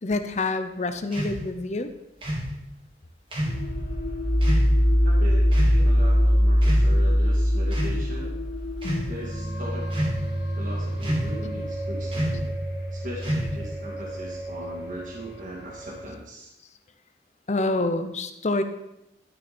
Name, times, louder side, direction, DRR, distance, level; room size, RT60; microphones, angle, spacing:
voice 1, 0.0-1.9 8.8-9.1 11.5-11.7 17.5-18.6, left 2 dB, 40° left, 9 dB, 0.7 m, -27 dB
sound 1, 1.1-1.4 2.2-2.5 3.3-3.6 4.4-4.7 5.5-5.8 6.6-7.1 7.7-8.0 8.7-9.1 9.9-10.3 11.0-11.4 12.1-12.5 13.2-13.7, equal, 30° right, 2.3 m, -29 dB
sound 2, 3.5-16.1, equal, 70° left, 2.2 m, -24 dB
voice 2, 5.0-8.4 9.1-10.0 10.5-12.4 12.9-16.5, equal, 45° right, -4 dB, 2.2 m, -39 dB
11.5 x 6.5 x 4.3 m, 0.89 s
head